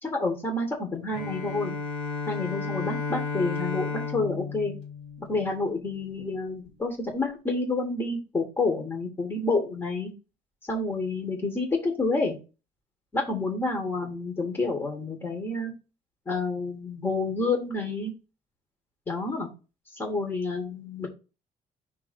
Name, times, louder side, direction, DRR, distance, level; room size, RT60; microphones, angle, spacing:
voice 1, 0.0-1.7 2.3-4.7 5.2-10.1 10.7-12.4 13.1-15.7 16.3-18.1 19.1-19.5 19.9-21.1, left 3 dB, 20° left, 1 dB, 1.6 m, -29 dB
Bowed string instrument, 1.1-5.8, left 5 dB, 45° left, 2.1 m, -33 dB
5.5 x 3.8 x 5.2 m, 0.29 s
cardioid pair, 165°, 14 cm